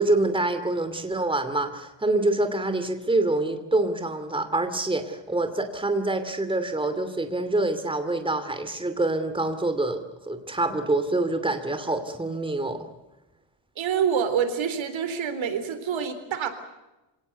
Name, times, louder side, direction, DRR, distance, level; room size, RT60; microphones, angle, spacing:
voice 1, 0.0-12.9, right 2 dB, 10° right, 8 dB, 2.6 m, -26 dB
voice 2, 13.8-16.5, right 7 dB, 90° right, 10 dB, 3.9 m, -26 dB
27.5 x 18.0 x 8.2 m, 1.0 s
wide cardioid pair, 145°, 45 cm